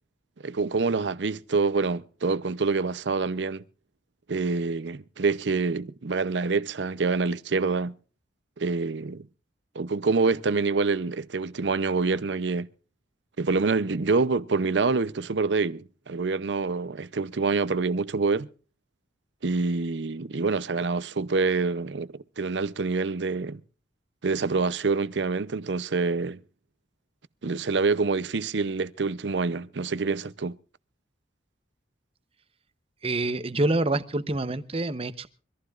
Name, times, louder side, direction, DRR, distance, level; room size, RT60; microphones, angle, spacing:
voice 1, 0.4-3.6 4.3-7.9 8.6-9.2 9.7-12.7 13.4-18.5 19.4-23.6 24.2-26.4 27.4-30.6, right 4 dB, 80° right, 0.7 m, -26 dB
voice 2, 33.0-35.3, right 2 dB, 35° right, 0.9 m, -26 dB
24.0 x 15.0 x 2.5 m
head